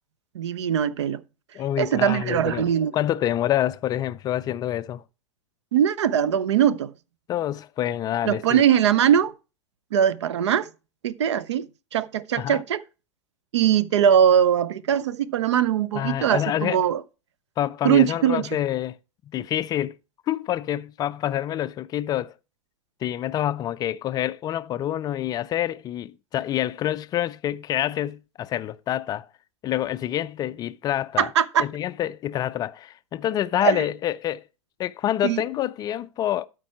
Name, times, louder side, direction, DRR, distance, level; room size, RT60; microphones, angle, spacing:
voice 1, 0.3-1.2 1.8-2.9 5.7-6.9 8.2-9.3 9.9-10.7 11.0-11.7 11.9-12.8 13.5-17.0 17.8-18.5 31.2-31.7 33.6-33.8 35.2-35.4, right 9 dB, 65° right, 0.6 m, -21 dB
voice 2, 1.5-5.0 7.3-8.6 12.4-12.6 15.9-16.8 17.6-19.0 19.3-20.0 20.3-22.3 23.0-29.3 29.6-31.3 31.6-34.4 34.8-36.5, left 12 dB, 25° left, 0.3 m, -27 dB
12.5 x 4.6 x 4.7 m
figure-of-eight pair, 95°, 16 cm